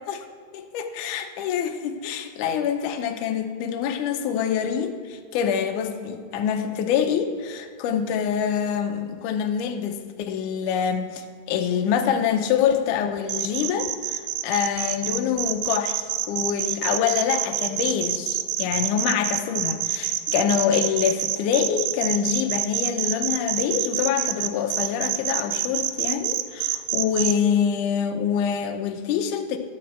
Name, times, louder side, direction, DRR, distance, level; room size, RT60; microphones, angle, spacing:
voice 1, 0.5-29.6, left 8 dB, 75° left, 5 dB, 1.9 m, -25 dB
sound 1, 13.3-27.3, right 13 dB, 85° right, 1.9 m, -26 dB
12.0 x 4.5 x 7.4 m, 2.1 s
omnidirectional pair, 4.3 m